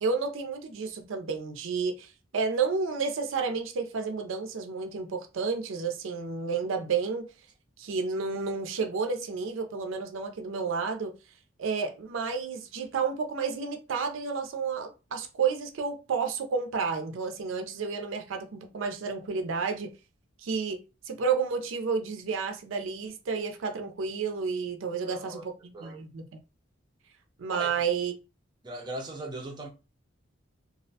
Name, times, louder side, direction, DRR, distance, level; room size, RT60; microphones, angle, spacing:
voice 1, 0.0-7.3 7.8-11.1 11.6-19.9 20.4-20.8 21.1-25.5 25.8-26.2 27.4-28.1, right 5 dB, 80° right, 0.4 m, -31 dB
voice 2, 25.0-25.5 25.7-26.0 27.5-27.9 28.6-29.7, right 1 dB, 20° right, 0.4 m, -39 dB
2.3 x 2.1 x 2.7 m
head